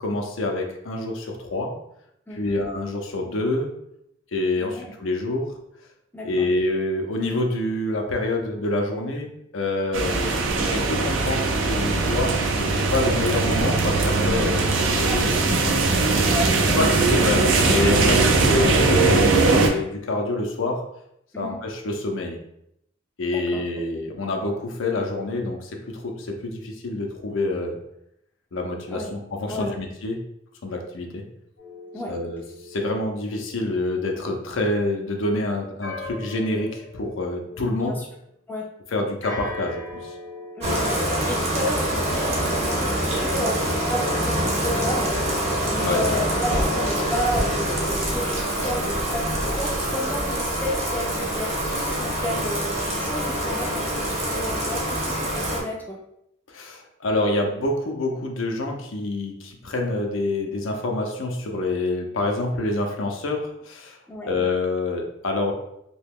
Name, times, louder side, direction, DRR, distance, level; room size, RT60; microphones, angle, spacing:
voice 1, 0.0-1.7 2.3-3.7 4.3-5.5 6.2-9.3 9.5-12.4 12.7-15.6 16.8-20.8 21.4-22.4 23.2-27.8 28.5-30.2 30.6-31.2 32.1-38.0 38.9-40.2 45.8-46.0 56.5-64.0 64.3-65.5, left 2 dB, 80° left, 2 dB, 0.5 m, -27 dB
voice 2, 2.3-2.6 4.6-4.9 6.1-6.5 15.1-15.3 16.2-16.5 21.3-21.6 23.3-23.6 28.9-29.1 29.5-29.8 31.9-32.1 37.8-38.1 38.5-38.6 40.6-41.0 41.3-56.0 64.1-64.3, equal, 10° left, -2 dB, 0.4 m, -32 dB
sound 1, 9.9-19.7, right 3 dB, 75° right, 0.5 m, -20 dB
sound 2, 31.6-34.8 35.8-38.2 39.2-41.1, left 3 dB, 60° left, 0.9 m, -40 dB
Bathtub (filling or washing), 40.6-55.6, equal, 30° right, 0.7 m, -25 dB
2.8 x 2.2 x 3.5 m, 0.77 s
head